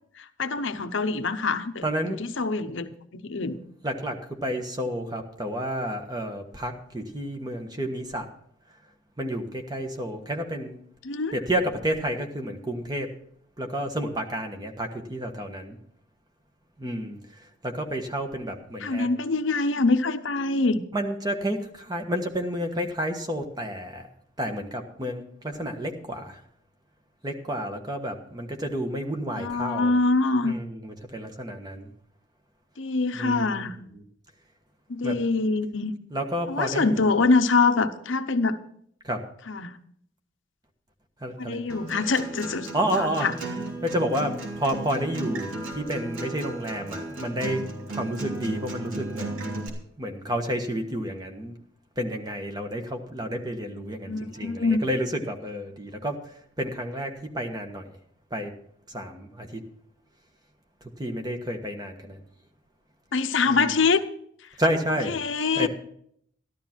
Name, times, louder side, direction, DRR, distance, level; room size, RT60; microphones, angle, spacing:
voice 1, 0.2-3.6 11.0-11.3 18.8-20.8 29.4-30.6 32.8-33.8 34.9-36.0 36.5-38.6 39.5-39.8 41.4-42.7 43.0-43.3 54.1-54.8 63.1-64.0 65.1-65.7, left 3 dB, 70° left, 9 dB, 0.8 m, -24 dB
voice 2, 1.8-2.2 3.4-3.5 3.8-8.3 9.2-10.8 11.3-13.1 13.6-15.8 16.8-19.1 20.9-24.1 24.4-26.4 27.2-29.9 30.4-31.9 33.1-33.6 33.9-34.0 35.0-35.1 36.1-37.1 39.0-39.2 41.2-41.6 42.7-43.3 43.8-47.6 47.9-49.7 50.0-51.5 52.0-57.9 58.3-58.5 58.9-59.6 61.0-62.2 63.5-63.7 64.6-65.2 65.6-65.7, equal, 20° right, 4 dB, 1.3 m, -30 dB
Acoustic guitar, 41.7-49.7, right 2 dB, 85° right, 3.0 m, -35 dB
13.5 x 12.0 x 4.5 m, 0.66 s
head